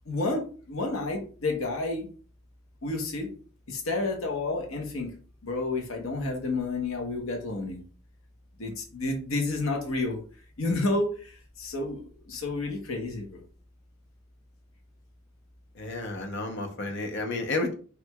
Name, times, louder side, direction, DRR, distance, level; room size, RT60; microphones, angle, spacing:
voice 1, 0.1-2.1 2.8-3.3 3.7-5.1 5.4-7.8 8.6-10.2 10.6-13.4, left 2 dB, 75° left, 2 dB, 1.0 m, -30 dB
voice 2, 15.8-17.7, left 2 dB, 55° left, 4 dB, 0.7 m, -31 dB
4.5 x 2.6 x 2.2 m, 0.40 s
head